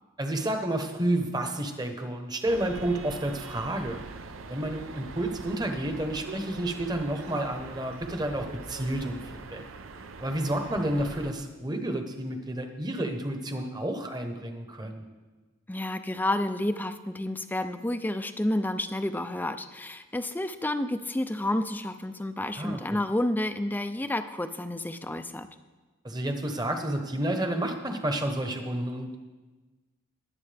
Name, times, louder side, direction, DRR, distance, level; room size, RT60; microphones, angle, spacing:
voice 1, 0.2-4.0 4.5-9.6 10.2-15.1 22.6-23.0 26.0-29.2, right 1 dB, 20° right, 5 dB, 1.0 m, -30 dB
sound 1, 2.5-11.3, right 3 dB, 80° right, 0.7 m, -42 dB
voice 2, 15.7-25.5, left 1 dB, 10° left, 10 dB, 0.4 m, -30 dB
21.5 x 8.3 x 3.4 m, 1.3 s
head